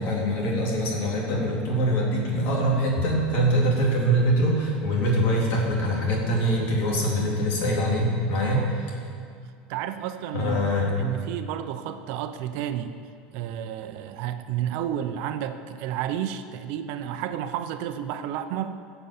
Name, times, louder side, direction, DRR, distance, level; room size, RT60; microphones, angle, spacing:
voice 1, 0.0-8.9 10.3-10.9, equal, 55° left, -2 dB, 3.5 m, -24 dB
voice 2, 9.7-13.0 13.3-18.8, right 10 dB, 60° right, 9 dB, 0.8 m, -31 dB
17.0 x 6.9 x 7.2 m, 2.3 s
supercardioid pair, 155°, 4 cm